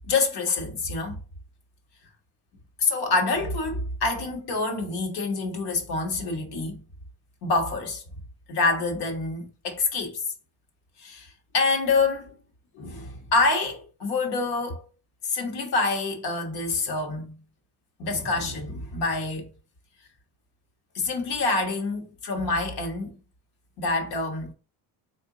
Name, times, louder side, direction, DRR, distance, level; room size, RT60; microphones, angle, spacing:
voice 1, 0.1-1.2 2.8-6.8 7.4-8.0 8.5-10.2 11.0-12.3 12.7-14.8 15.2-17.4 18.0-19.5 20.9-23.2 23.8-24.5, left 3 dB, 75° left, 1.3 m, -26 dB
3.8 x 2.6 x 3.7 m
cardioid pair, 100°, 39 cm